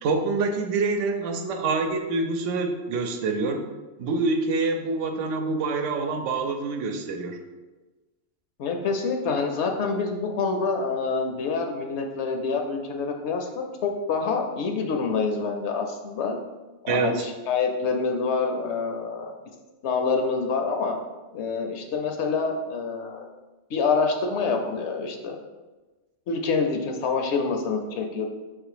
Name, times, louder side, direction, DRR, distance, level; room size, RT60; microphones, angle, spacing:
voice 1, 0.0-3.6 4.0-7.4 16.9-17.3, right 3 dB, 75° right, 5 dB, 0.9 m, -26 dB
voice 2, 8.6-16.4 16.8-19.3 19.8-20.9 21.3-23.3 23.7-25.4 26.3-28.3, left 4 dB, 70° left, 3 dB, 0.8 m, -26 dB
3.7 x 2.9 x 4.8 m, 1.2 s
omnidirectional pair, 1.3 m